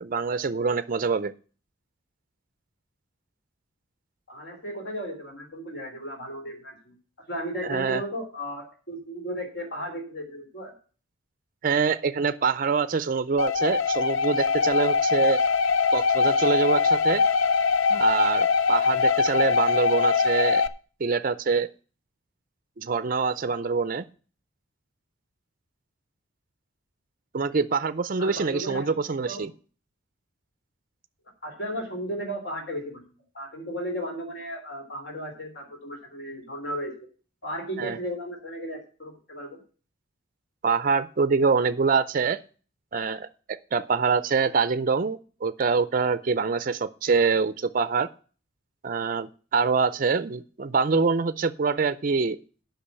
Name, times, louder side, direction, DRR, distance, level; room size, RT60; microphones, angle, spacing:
voice 1, 0.0-1.3 7.6-8.0 11.6-15.4 15.9-17.2 17.9-20.6 21.0-21.7 22.8-24.0 27.3-29.5 37.8-38.0 40.6-42.4 42.9-43.3 43.7-48.1 48.8-52.4, right 5 dB, 45° right, 15 dB, 0.5 m, -25 dB
voice 2, 4.3-6.9 7.3-10.7 28.2-28.9 29.2-29.5 31.4-33.0 33.3-37.1 37.4-39.6, equal, 55° left, 2 dB, 3.4 m, -35 dB
sound 1, 13.4-20.7, left 5 dB, 80° left, 0.6 m, -22 dB
8.6 x 5.9 x 8.2 m, 0.39 s
head